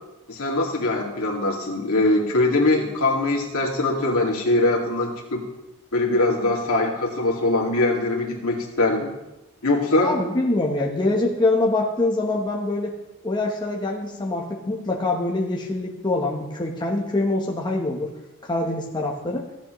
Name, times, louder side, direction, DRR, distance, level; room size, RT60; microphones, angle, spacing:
voice 1, 0.3-5.4 5.9-9.1 9.6-10.1, left 2 dB, 70° left, -2 dB, 2.2 m, -22 dB
voice 2, 10.0-12.9 13.2-18.1 18.4-19.4, left 2 dB, 20° left, -1 dB, 1.0 m, -24 dB
15.0 x 8.8 x 3.1 m, 0.96 s
head